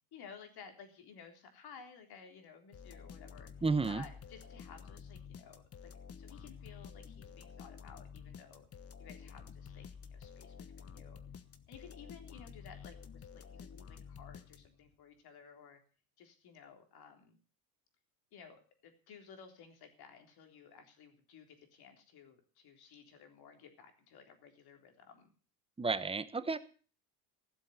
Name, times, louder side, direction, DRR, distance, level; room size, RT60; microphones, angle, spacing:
voice 1, 0.1-3.5 3.8-5.9 6.2-8.7 9.0-11.2 11.7-15.8 16.2-17.4 18.3-25.3, left 6 dB, 50° left, 6 dB, 3.7 m, -55 dB
sound 1, 2.7-14.9, left 6 dB, 30° left, 1.2 m, -51 dB
voice 2, 3.6-4.1 25.8-26.6, right 4 dB, 10° right, 13 dB, 1.0 m, -32 dB
16.0 x 7.4 x 8.0 m, 0.39 s
supercardioid pair, 110°, 49 cm